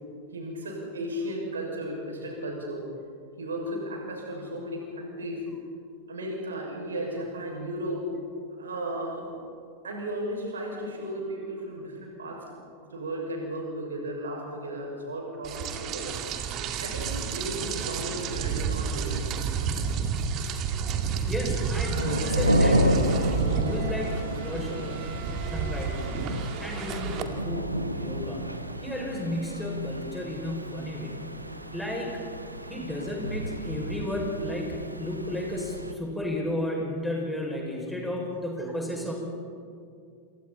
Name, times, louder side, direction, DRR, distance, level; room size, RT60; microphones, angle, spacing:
voice 1, 0.3-2.8 3.4-5.5 6.1-8.1 8.6-9.3 9.8-12.4 12.9-16.2 16.8-19.4, right 1 dB, 70° right, 0 dB, 6.6 m, -35 dB
Rain, 15.4-27.2, right 6 dB, 35° right, 2.2 m, -31 dB
voice 2, 21.3-23.0 23.3-25.1 25.4-26.2 26.6-28.4 28.8-31.1 31.7-32.2 32.7-39.1, left 1 dB, 5° left, -2 dB, 6.7 m, -33 dB
sound 1, 21.9-35.9, equal, 85° right, 1.6 m, -30 dB
28.0 x 28.0 x 4.4 m, 2.3 s
figure-of-eight pair, 90°, 0 cm